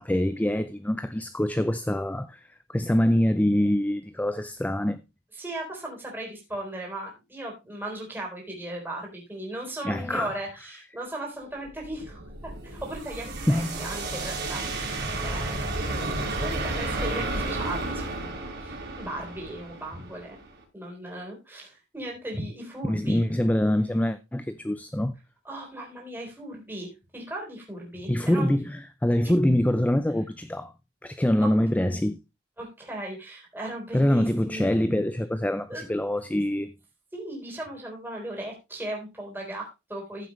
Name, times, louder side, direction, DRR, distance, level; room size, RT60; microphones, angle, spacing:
voice 1, 0.0-2.4 2.7-5.0 9.8-10.3 13.5-13.9 22.9-25.1 28.1-30.7 31.0-32.2 33.9-36.7, left 1 dB, 5° left, 0.4 m, -25 dB
voice 2, 5.3-14.6 15.2-20.4 20.7-23.2 25.4-28.5 29.2-29.3 31.4-31.5 32.6-35.0 35.7-35.9 37.1-40.3, right 1 dB, 10° right, 4.0 m, -37 dB
sound 1, 11.7-20.6, right 2 dB, 55° right, 4.9 m, -32 dB
14.5 x 7.5 x 3.1 m
head